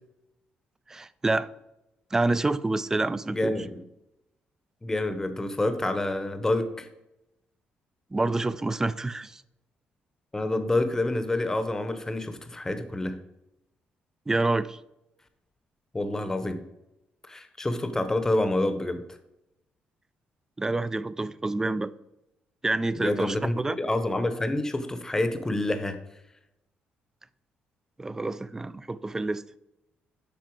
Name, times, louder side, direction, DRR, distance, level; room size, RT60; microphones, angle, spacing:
voice 1, 0.9-1.5 2.1-3.5 8.1-9.4 14.3-14.8 20.6-21.9 22.6-23.8 28.0-29.4, right 2 dB, 15° right, 0.3 m, -27 dB
voice 2, 3.3-3.8 4.8-6.9 10.3-13.2 15.9-16.6 17.3-19.0 23.0-26.0, left 2 dB, 15° left, 0.8 m, -28 dB
8.5 x 5.6 x 4.6 m
cardioid pair, 120°, 4 cm